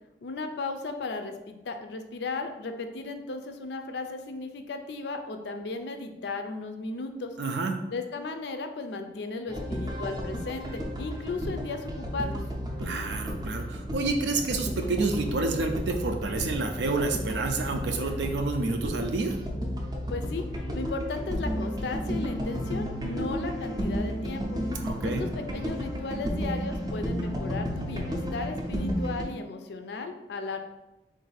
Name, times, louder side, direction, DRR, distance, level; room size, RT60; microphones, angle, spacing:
voice 1, 0.2-7.3 7.9-12.4 20.1-20.4 20.7-24.6 25.0-30.6, left 3 dB, 65° left, 6 dB, 0.4 m, -35 dB
voice 2, 7.4-7.8 12.8-19.3 24.8-25.2, right 3 dB, 75° right, 5 dB, 0.5 m, -29 dB
sound 1, 9.5-29.3, equal, 25° right, 0.5 m, -33 dB
3.6 x 2.6 x 3.9 m, 1.0 s
head